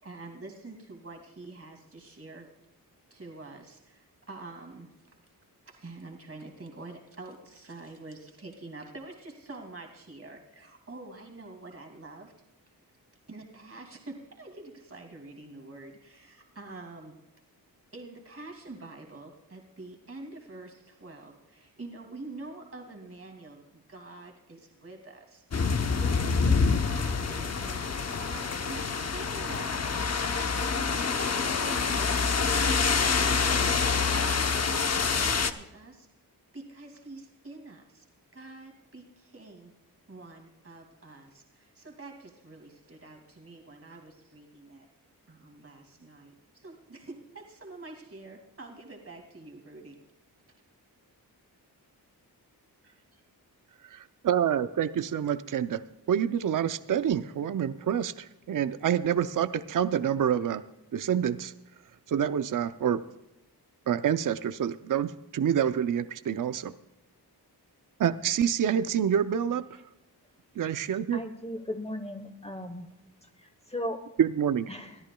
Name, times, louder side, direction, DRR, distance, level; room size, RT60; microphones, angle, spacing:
voice 1, 0.0-2.5 3.1-4.9 5.7-12.3 13.3-17.1 17.9-36.1 36.5-38.0 38.3-39.7 40.1-44.9 45.3-50.0 52.8-53.2, right 2 dB, 35° right, 2 dB, 2.5 m, -46 dB
sound 1, 25.5-35.5, left 5 dB, 40° left, 0.8 m, -26 dB
voice 2, 53.8-55.8 56.1-60.6 60.9-61.5 62.1-63.0 63.9-66.7 68.0-69.7 70.6-71.2 74.2-74.8, right 9 dB, 55° right, 12 dB, 0.6 m, -27 dB
voice 3, 71.1-72.9 73.4-74.0 74.7-75.0, left 1 dB, 15° left, 7 dB, 1.0 m, -36 dB
23.0 x 13.5 x 2.3 m, 0.94 s
wide cardioid pair, 90°, 40 cm